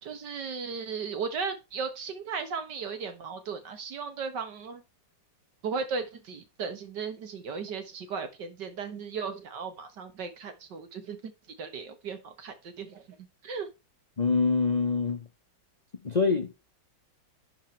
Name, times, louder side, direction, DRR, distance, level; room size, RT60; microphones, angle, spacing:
voice 1, 0.0-4.8 5.6-11.3 11.6-13.0 13.4-13.7, right 5 dB, 65° right, 1.9 m, -36 dB
voice 2, 14.2-15.3 16.0-16.5, left 4 dB, 30° left, 0.8 m, -25 dB
11.0 x 4.8 x 4.4 m
omnidirectional pair, 2.0 m